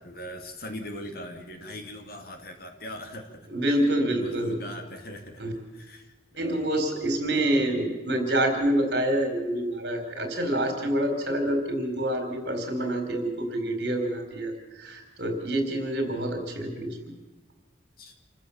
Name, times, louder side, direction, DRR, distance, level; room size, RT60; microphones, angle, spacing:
voice 1, 0.0-3.5 4.1-6.7 7.3-7.8 18.0-18.2, equal, 50° left, 5 dB, 2.3 m, -41 dB
voice 2, 3.5-4.6 5.4-5.5 6.4-17.1, right 1 dB, 55° right, 5 dB, 4.4 m, -27 dB
28.0 x 14.5 x 7.2 m, 1.1 s
head